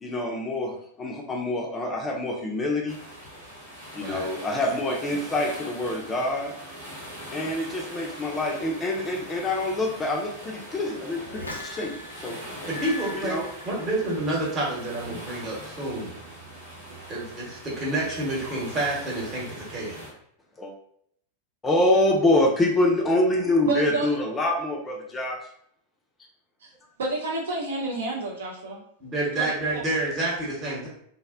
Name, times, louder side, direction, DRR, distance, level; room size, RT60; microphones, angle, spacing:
voice 1, 0.0-3.0 3.9-6.5 7.3-12.4 13.2-13.4 20.6-20.7 21.6-25.4, left 1 dB, 15° left, 0 dB, 0.4 m, -25 dB
sound 1, 2.9-20.1, equal, 80° right, 1.1 m, -42 dB
sound 2, 11.2-14.3 14.6-15.0, left 2 dB, 80° left, 0.4 m, -40 dB
voice 2, 12.6-13.4 13.6-16.2 17.1-20.0 29.0-30.9, right 2 dB, 30° right, -4 dB, 1.0 m, -29 dB
voice 3, 23.6-24.2 26.6-26.7 27.0-28.8 29.3-29.8, right 3 dB, 65° right, -1 dB, 0.5 m, -30 dB
2.5 x 2.0 x 2.4 m, 0.69 s
figure-of-eight pair, 90°, 0 cm